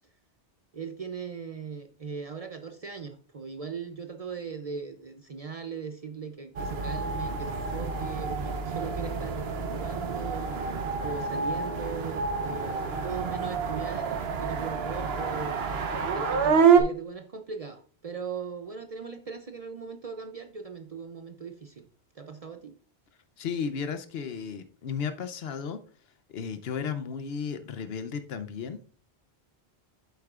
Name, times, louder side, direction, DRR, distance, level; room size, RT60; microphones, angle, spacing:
voice 1, 0.7-10.5 11.0-15.6 16.1-21.9 22.2-22.7, right 6 dB, 45° right, 0.5 m, -39 dB
sound 1, 6.6-16.8, right 5 dB, 70° right, 1.1 m, -28 dB
voice 2, 23.4-25.8 26.3-28.8, left 6 dB, 70° left, 0.9 m, -34 dB
8.2 x 8.0 x 2.4 m
omnidirectional pair, 1.1 m